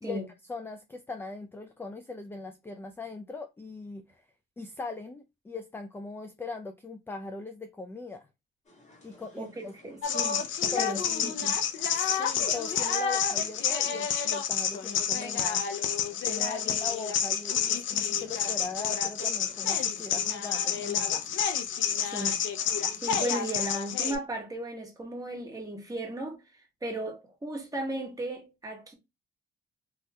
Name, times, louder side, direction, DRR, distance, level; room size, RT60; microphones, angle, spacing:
voice 1, 0.0-4.3 4.6-8.3 9.0-9.7 10.7-11.4 12.2-15.6 16.2-21.3, left 3 dB, 10° left, 0.3 m, -40 dB
sound 1, 8.6-23.1, left 1 dB, 35° left, 1.9 m, -53 dB
voice 2, 9.4-11.0 11.4-11.6 22.0-22.4 23.0-26.4 26.8-28.9, right 1 dB, 15° right, 1.3 m, -35 dB
sound 2, 10.0-24.2, left 8 dB, 75° left, 0.5 m, -29 dB
3.1 x 2.8 x 2.2 m
cardioid pair, 90°, 20 cm